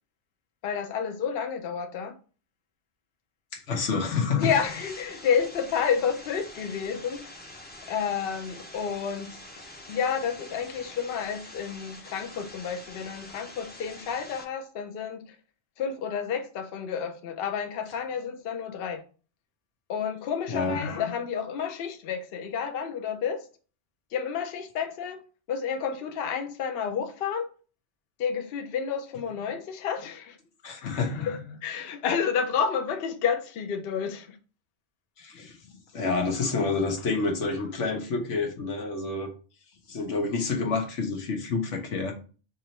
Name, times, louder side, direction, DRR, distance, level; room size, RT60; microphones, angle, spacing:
voice 1, 0.6-2.2 3.8-7.3 7.9-9.4 9.9-15.4 15.8-19.0 19.9-23.5 24.1-25.2 25.5-27.5 28.2-30.4 30.8-34.4 36.4-36.6, left 7 dB, 65° left, 0.7 m, -30 dB
voice 2, 3.5-4.5 20.5-20.8 30.6-31.3 35.2-35.6 35.9-39.3 39.9-42.1, left 4 dB, 90° left, 1.3 m, -28 dB
sound 1, 4.4-14.4, left 1 dB, 10° left, 0.5 m, -45 dB
3.6 x 2.9 x 4.3 m
omnidirectional pair, 1.2 m